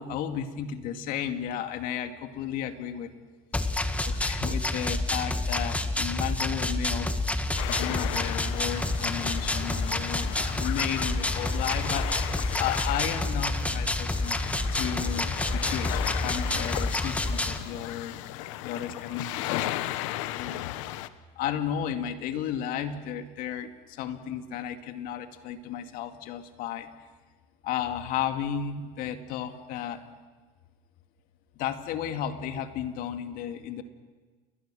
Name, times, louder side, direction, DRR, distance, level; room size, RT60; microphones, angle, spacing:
voice 1, 0.0-3.1 4.0-7.2 7.7-14.4 14.7-19.7 20.3-20.8 21.4-26.9 27.6-30.0 31.6-33.8, left 9 dB, 60° left, 7 dB, 2.2 m, -34 dB
sound 1, 3.5-17.6, left 2 dB, 10° left, 1.7 m, -29 dB
sound 2, 7.6-21.1, left 15 dB, 80° left, 1.0 m, -36 dB
30.0 x 21.5 x 6.4 m, 1.4 s
supercardioid pair, 105°, 16 cm